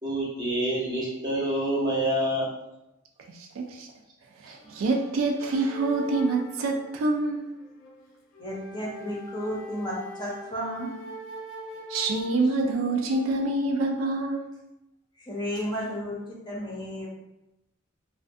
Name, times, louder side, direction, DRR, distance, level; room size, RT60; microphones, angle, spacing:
voice 1, 0.0-2.5, right 1 dB, 20° right, -6 dB, 0.7 m, -27 dB
voice 2, 3.3-3.9 4.4-7.4 11.9-14.5, right 2 dB, 75° right, 2 dB, 0.3 m, -26 dB
sound 1, 4.6-13.4, equal, 85° left, 0.5 m, -43 dB
voice 3, 8.4-10.9 15.3-16.2 16.5-17.1, equal, 20° left, -5 dB, 0.6 m, -33 dB
2.5 x 2.2 x 2.5 m, 0.91 s
head